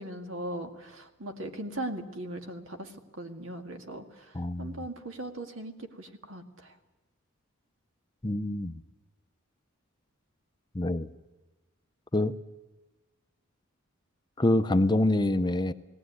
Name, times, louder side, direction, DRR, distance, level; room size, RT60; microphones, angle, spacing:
voice 1, 0.0-6.7, right 1 dB, 65° right, 6 dB, 2.1 m, -39 dB
voice 2, 4.3-4.8 8.2-8.7 10.7-11.1 12.1-12.3 14.4-15.7, left 1 dB, 20° left, 10 dB, 0.6 m, -25 dB
18.5 x 18.0 x 9.5 m, 1.1 s
head